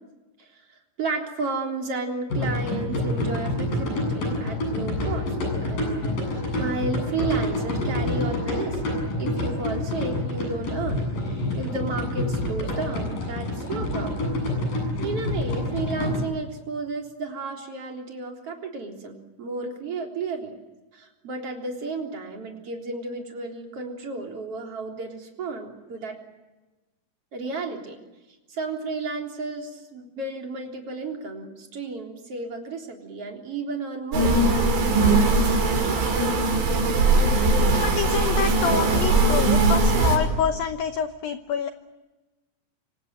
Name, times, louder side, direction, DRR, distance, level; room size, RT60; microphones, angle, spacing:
voice 1, 1.0-5.3 5.6-8.8 9.2-11.0 11.6-14.3 15.0-20.6 20.9-26.2 27.3-28.0 28.5-36.1, right 3 dB, 35° right, 2 dB, 4.1 m, -33 dB
sound 1, 2.3-16.2, left 1 dB, 45° left, 9.4 m, -27 dB
sound 2, 34.1-40.2, right 3 dB, 85° right, 7.8 m, -20 dB
voice 2, 37.8-41.7, left 8 dB, 85° left, 8 dB, 2.0 m, -27 dB
26.5 x 25.5 x 7.9 m, 1.1 s
omnidirectional pair, 5.6 m